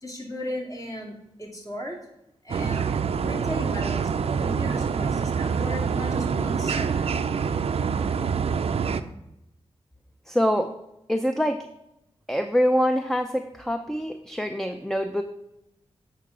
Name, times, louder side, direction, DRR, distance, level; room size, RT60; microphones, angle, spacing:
voice 1, 0.0-2.0 2.4-2.9 3.2-7.2, left 1 dB, 30° left, -2 dB, 2.3 m, -36 dB
sound 1, 2.5-9.0, right 6 dB, 65° right, 0.4 m, -26 dB
voice 2, 10.3-10.7 11.1-11.7 12.3-15.2, equal, 5° left, 6 dB, 0.5 m, -25 dB
8.3 x 5.7 x 3.7 m, 0.86 s
cardioid pair, 60°, 11 cm